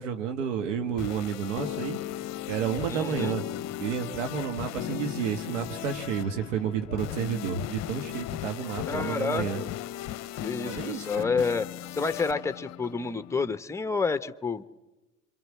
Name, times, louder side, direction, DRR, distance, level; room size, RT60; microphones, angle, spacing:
voice 1, 0.0-2.0 2.5-3.4 3.8-9.6 10.6-11.3, right 7 dB, 75° right, 7 dB, 1.9 m, -31 dB
sound 1, 0.8-13.6, left 13 dB, 45° left, 0.8 m, -37 dB
voice 2, 2.9-3.4 8.9-9.7 10.4-11.7 11.9-14.6, left 4 dB, 5° left, 12 dB, 1.0 m, -29 dB
26.5 x 25.0 x 7.6 m, 1.1 s
hypercardioid pair, 70°, 38 cm